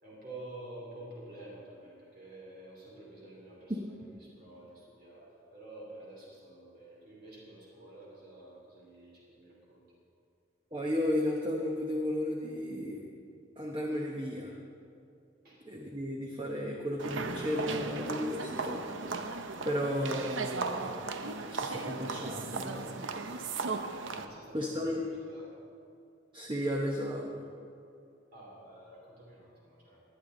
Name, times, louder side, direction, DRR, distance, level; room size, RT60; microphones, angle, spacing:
voice 1, 0.0-9.8 15.4-15.7 24.2-25.5 28.3-30.0, right 1 dB, 50° right, -5 dB, 3.4 m, -50 dB
voice 2, 10.7-13.1 13.6-14.6 15.6-19.2 19.6-21.1 21.5-23.4 24.5-25.0 26.3-27.3, left 1 dB, 25° right, 0 dB, 1.0 m, -34 dB
sound 1, 17.0-24.3, right 4 dB, 75° right, 0.8 m, -36 dB
19.5 x 10.0 x 3.9 m, 2.6 s
head